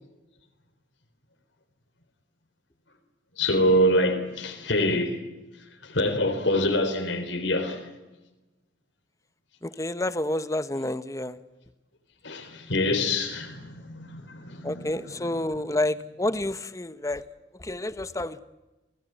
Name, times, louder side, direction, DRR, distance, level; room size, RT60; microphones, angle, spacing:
voice 1, 3.4-5.2 5.8-7.8 12.2-15.4, left 1 dB, 70° left, 3.7 m, -25 dB
voice 2, 9.6-11.4 14.6-17.2 17.6-18.4, left 1 dB, 15° left, 1.0 m, -29 dB
30.0 x 19.0 x 9.2 m
head